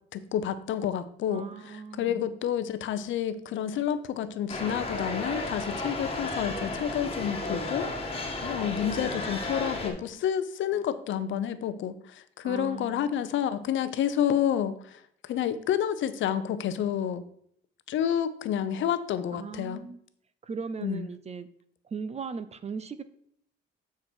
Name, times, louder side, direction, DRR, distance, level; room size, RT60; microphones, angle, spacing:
voice 1, 0.1-1.5 2.0-17.2 17.9-19.8 20.8-21.0, left 9 dB, 75° left, 0.7 m, -29 dB
voice 2, 1.3-2.2 12.4-13.2 19.3-20.0 20.4-21.5 21.8-23.0, right 5 dB, 35° right, 0.6 m, -38 dB
sound 1, 4.5-9.9, left 2 dB, 30° left, 1.6 m, -33 dB
8.0 x 4.8 x 4.4 m
cardioid pair, 90°, 20 cm